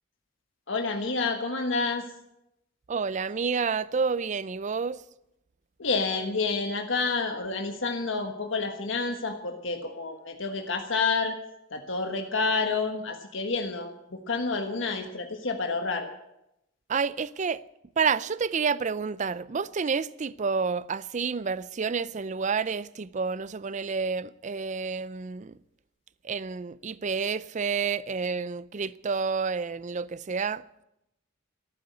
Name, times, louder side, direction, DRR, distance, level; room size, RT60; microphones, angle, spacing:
voice 1, 0.7-2.0 5.8-11.3 11.7-16.1, left 4 dB, 70° left, 1.5 m, -29 dB
voice 2, 2.9-5.0 16.9-17.6 18.0-25.6 26.2-30.8, right 5 dB, 40° right, 0.5 m, -29 dB
13.5 x 11.5 x 8.3 m
head